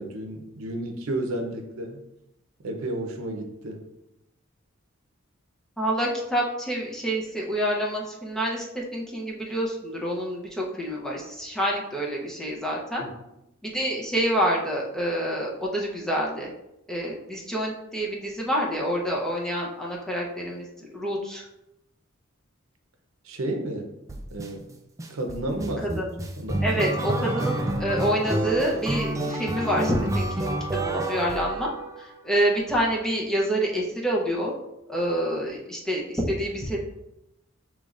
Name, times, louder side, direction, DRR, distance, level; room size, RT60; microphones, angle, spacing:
voice 1, 0.0-2.0 2.6-3.8 13.0-13.1 23.2-23.9 24.3-24.7 25.1-26.0 26.4-26.9, right 1 dB, 90° right, 4 dB, 0.7 m, -32 dB
voice 2, 5.8-8.7 8.9-13.1 13.6-16.5 16.9-21.5 26.0-26.1 26.6-31.7 32.0-34.5 34.9-36.8, equal, 5° left, -3 dB, 0.7 m, -27 dB
sound 1, 24.1-24.5 25.0-32.2, right 1 dB, 15° right, 0.4 m, -29 dB
6.5 x 3.1 x 2.5 m, 0.88 s
head